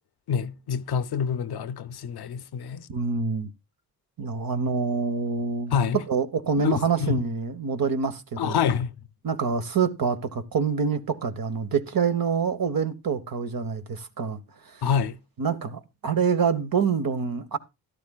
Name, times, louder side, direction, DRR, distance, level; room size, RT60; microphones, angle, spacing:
voice 1, 0.3-2.9 5.7-6.0 6.6-7.2 8.4-8.9 14.8-15.2, left 7 dB, 85° left, 0.8 m, -26 dB
voice 2, 2.9-3.5 4.2-8.6 9.2-14.4 14.7-14.9 15.4-17.6, right 6 dB, 65° right, 1.3 m, -26 dB
13.5 x 11.0 x 2.4 m
cardioid pair, 50°, 37 cm